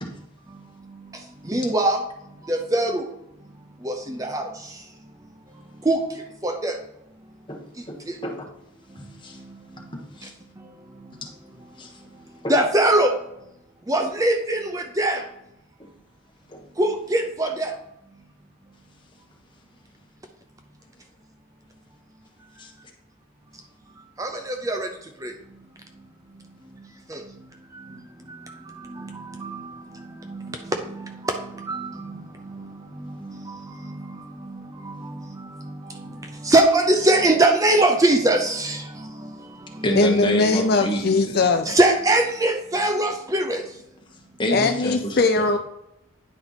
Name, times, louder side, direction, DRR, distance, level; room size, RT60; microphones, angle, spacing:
voice 1, 1.5-2.0 2.5-3.1 3.8-4.5 5.9-6.0 6.4-6.8 12.5-13.1 13.9-15.2 16.8-17.7 24.2-24.9 25.2-25.3 27.1-27.2 29.0-29.7 30.3-30.5 30.9-32.2 32.5-32.7 33.2-33.6 34.5-34.6 34.8-35.1 36.4-38.8 41.7-43.6, right 1 dB, 15° right, 4 dB, 0.5 m, -21 dB
voice 2, 7.9-8.4 9.0-9.4 10.2-10.3 11.8-11.9 12.4-12.5 16.5-16.6 22.6-22.7 39.8-41.0 41.3-41.5 44.4-45.4, equal, 25° left, 1 dB, 1.2 m, -28 dB
voice 3, 40.0-41.7 44.5-45.6, left 3 dB, 50° left, 7 dB, 0.4 m, -20 dB
9.6 x 4.4 x 4.0 m, 0.86 s
head